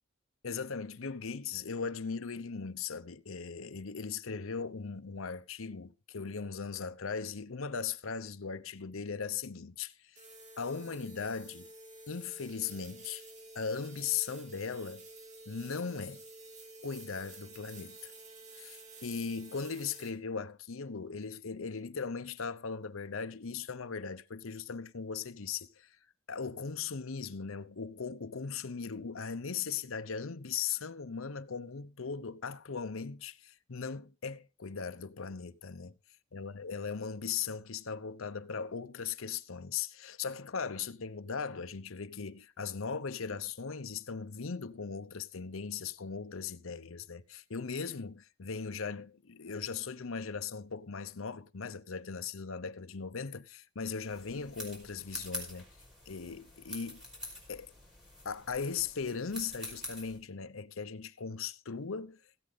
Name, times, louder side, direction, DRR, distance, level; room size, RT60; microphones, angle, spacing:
voice 1, 0.4-10.3 10.6-11.7 12.1-13.2 13.5-15.1 15.5-16.2 16.8-18.1 18.6-26.0 26.3-35.9 36.3-55.7 56.1-57.0 57.5-57.7 58.2-62.2, left 5 dB, 80° left, 0.8 m, -38 dB
sound 1, 10.1-20.1, right 2 dB, 35° right, 3.3 m, -51 dB
sound 2, 54.1-60.2, left 1 dB, 5° right, 5.5 m, -46 dB
17.0 x 8.9 x 4.0 m
head